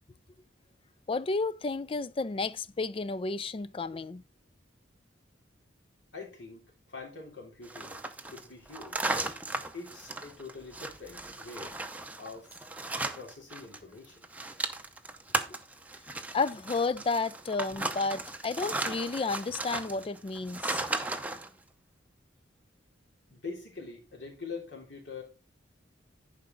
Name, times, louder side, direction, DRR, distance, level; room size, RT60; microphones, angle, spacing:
voice 1, 1.1-4.2 16.3-20.8, left 3 dB, 30° left, 0.3 m, -32 dB
voice 2, 6.1-8.0 8.3-9.2 9.7-11.8 12.2-12.6 13.1-14.2 23.3-25.2, left 4 dB, 65° left, 3.5 m, -44 dB
sound 1, 7.6-13.8 14.0-21.5, right 2 dB, 10° right, 0.6 m, -36 dB
10.5 x 5.0 x 3.9 m
head